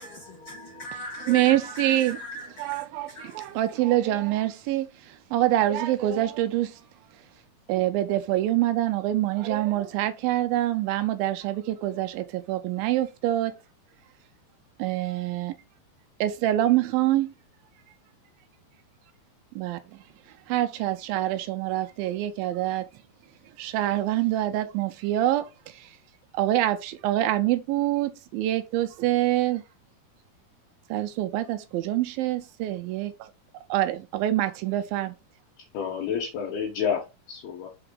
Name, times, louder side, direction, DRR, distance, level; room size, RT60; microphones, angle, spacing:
voice 1, 0.0-2.8 3.1-3.6, equal, 45° left, 2.2 m, -39 dB
voice 2, 1.3-6.8 7.1-7.2 7.7-13.6 14.8-15.6 16.2-17.3 19.6-19.8 20.5-22.9 23.6-26.0 26.3-29.6 30.9-33.3 33.7-35.2, right 14 dB, 80° right, 2.2 m, -26 dB
voice 3, 35.7-37.7, left 7 dB, 80° left, 3.1 m, -29 dB
5.7 x 4.4 x 3.8 m
omnidirectional pair, 4.4 m